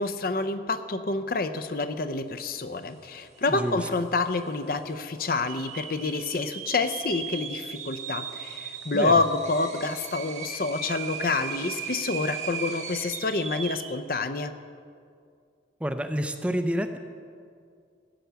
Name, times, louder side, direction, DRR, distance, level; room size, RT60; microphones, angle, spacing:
voice 1, 0.0-14.5, left 3 dB, 50° left, 10 dB, 0.6 m, -28 dB
sound 1, 3.1-3.2 3.4-3.9 4.4-4.5 5.3-14.0, right 7 dB, 40° right, 1.1 m, -37 dB
voice 2, 3.5-3.8 8.9-9.1 15.8-17.0, equal, 5° right, 7 dB, 0.5 m, -28 dB
15.5 x 9.0 x 6.9 m, 2.3 s
head